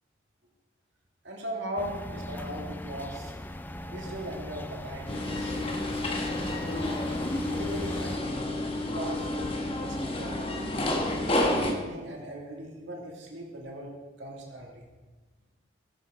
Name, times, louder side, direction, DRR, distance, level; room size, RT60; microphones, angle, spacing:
voice 1, 1.2-3.3 3.9-6.8 7.5-8.5 8.8-11.0 11.4-14.9, right 1 dB, 65° right, -1 dB, 2.3 m, -39 dB
sound 1, 1.8-8.2, left 1 dB, 10° left, 0.3 m, -39 dB
sound 2, 5.1-11.7, left 1 dB, 30° left, 1.1 m, -30 dB
13.5 x 10.5 x 3.7 m, 1.3 s
head